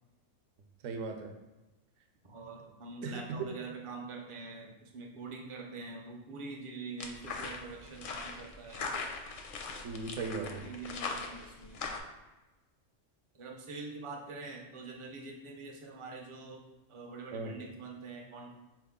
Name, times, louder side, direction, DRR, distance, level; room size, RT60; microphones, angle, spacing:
voice 1, 0.8-1.3 3.0-3.5 9.8-10.6 17.3-17.6, right 4 dB, 80° right, 5 dB, 0.9 m, -37 dB
voice 2, 2.2-8.9 10.5-11.9 13.3-16.6 16.9-18.5, right 3 dB, 40° right, 0 dB, 0.5 m, -45 dB
sound 1, 7.0-12.0, left 4 dB, 60° left, 0.6 m, -40 dB
4.5 x 3.0 x 3.6 m, 1.1 s
omnidirectional pair, 1.3 m